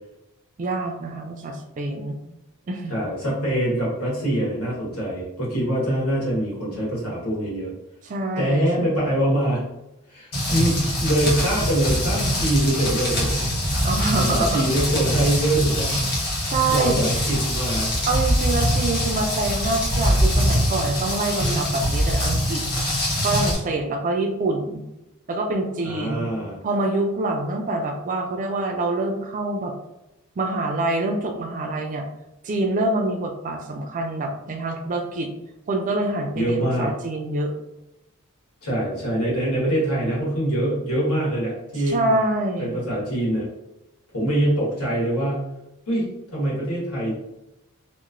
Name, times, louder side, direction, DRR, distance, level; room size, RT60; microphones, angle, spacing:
voice 1, 0.6-2.2 2.7-2.9 8.0-9.1 13.8-14.7 16.4-17.0 18.1-22.6 23.2-24.8 25.3-26.3 26.6-29.7 30.4-32.0 32.4-35.3 35.7-37.5 41.9-42.8, right 2 dB, 35° right, 4 dB, 0.3 m, -26 dB
voice 2, 2.9-7.7 8.4-9.6 10.1-13.5 14.1-15.9 16.2-16.4 16.7-17.9 25.8-26.6 36.3-36.9 38.6-42.2 42.6-43.5 44.1-45.4 45.9-47.1, right 1 dB, 85° left, -7 dB, 1.3 m, -24 dB
Rain, 10.3-23.5, equal, 45° left, 0.9 m, -23 dB
2.9 x 2.0 x 2.4 m, 0.93 s
head